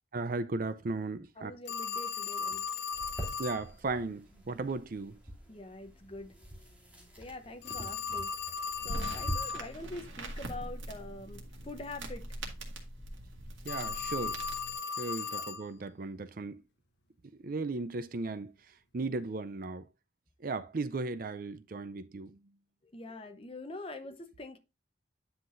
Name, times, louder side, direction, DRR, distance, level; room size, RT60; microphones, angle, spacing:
voice 1, 0.1-1.5 3.4-5.2 13.6-14.4 15.0-16.6 17.4-18.5 18.9-19.8 20.4-22.4, right 3 dB, 50° right, 0.5 m, -36 dB
voice 2, 1.4-2.6 5.5-6.3 7.2-8.3 8.8-12.2 22.9-24.6, left 2 dB, 30° left, 0.8 m, -44 dB
Telephone, 1.7-3.6 7.6-9.7 13.6-15.6, left 5 dB, 60° left, 1.1 m, -36 dB
sound 1, 2.9-9.3, right 1 dB, 5° right, 2.6 m, -45 dB
sound 2, 8.7-14.7, right 1 dB, 85° right, 1.9 m, -42 dB
9.8 x 5.9 x 2.5 m
head